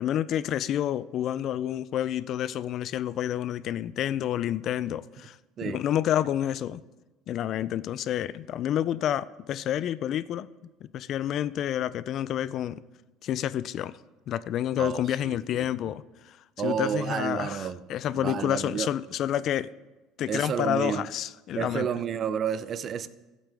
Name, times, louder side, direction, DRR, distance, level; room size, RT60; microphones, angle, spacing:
voice 1, 0.0-5.4 5.6-6.8 7.3-10.5 10.9-12.8 13.2-14.0 14.3-16.4 16.6-19.7 20.2-21.9, left 11 dB, 45° left, 0.3 m, -29 dB
voice 2, 14.8-15.7 16.6-17.8 18.2-18.9 20.3-21.1 21.5-23.1, right 8 dB, 35° right, 0.5 m, -30 dB
15.0 x 8.1 x 3.5 m
cardioid pair, 135°, 0 cm